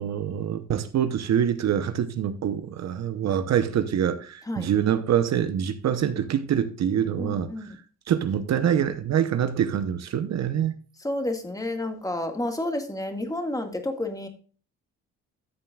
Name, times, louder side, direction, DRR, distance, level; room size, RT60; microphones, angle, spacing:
voice 1, 0.0-7.5 8.1-10.8, right 9 dB, 60° right, 0.9 m, -25 dB
voice 2, 7.2-7.7 11.0-14.3, left 1 dB, 10° left, 1.8 m, -30 dB
13.0 x 7.5 x 2.4 m
cardioid pair, 90°, 30 cm